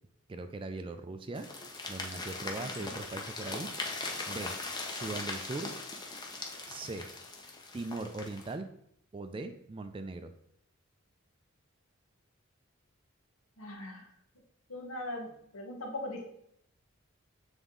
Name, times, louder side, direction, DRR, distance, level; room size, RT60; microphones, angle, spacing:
voice 1, 0.3-1.5 1.9-3.7 4.3-4.5 4.9-5.7 6.7-7.1 7.7-8.7 9.1-10.3, right 2 dB, 25° right, 8 dB, 0.3 m, -39 dB
sound 1, 1.4-8.5, left 3 dB, 20° left, 0.6 m, -40 dB
voice 2, 13.6-14.0 14.7-16.3, left 1 dB, 85° left, 1 dB, 1.3 m, -40 dB
7.2 x 3.6 x 3.7 m, 0.73 s
head